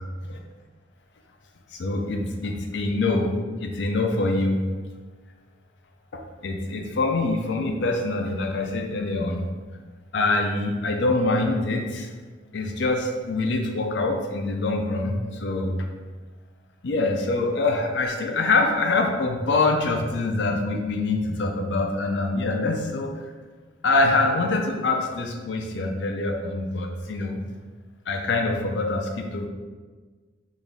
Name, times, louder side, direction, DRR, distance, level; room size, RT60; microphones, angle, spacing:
voice 1, 1.7-4.6 6.1-9.5 10.1-12.1 12.5-15.9 16.8-23.2 23.8-27.4 28.1-29.5, left 2 dB, 65° left, 3 dB, 0.5 m, -25 dB
4.1 x 2.5 x 3.5 m, 1.4 s
head